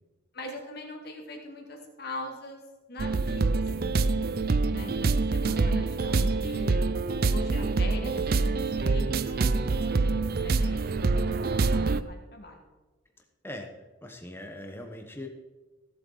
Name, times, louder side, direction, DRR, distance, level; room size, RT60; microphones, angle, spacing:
voice 1, 0.3-2.6 2.9-4.3 4.7-6.9 7.3-12.7, left 1 dB, 55° left, 1 dB, 2.1 m, -42 dB
sound 1, 3.0-12.0, right 3 dB, 50° right, 0.4 m, -26 dB
voice 2, 11.1-11.5 13.4-13.7 14.0-15.3, left 1 dB, 10° left, 4 dB, 1.2 m, -41 dB
16.5 x 7.8 x 4.1 m, 1.2 s
head